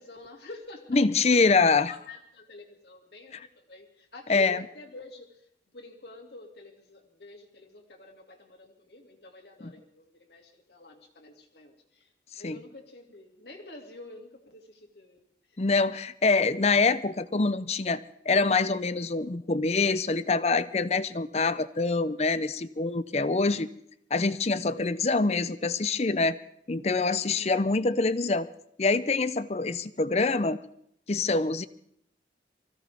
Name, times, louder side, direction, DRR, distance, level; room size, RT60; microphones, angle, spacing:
voice 1, 0.0-1.0 1.3-15.6 27.2-27.6, left 2 dB, 70° left, 2 dB, 2.6 m, -48 dB
voice 2, 0.9-1.9 4.3-4.6 12.4-12.6 15.6-23.7 24.1-26.4 26.7-28.5 28.8-30.6 31.1-31.7, left 3 dB, 35° left, 15 dB, 0.6 m, -25 dB
24.0 x 16.0 x 3.6 m, 0.70 s
head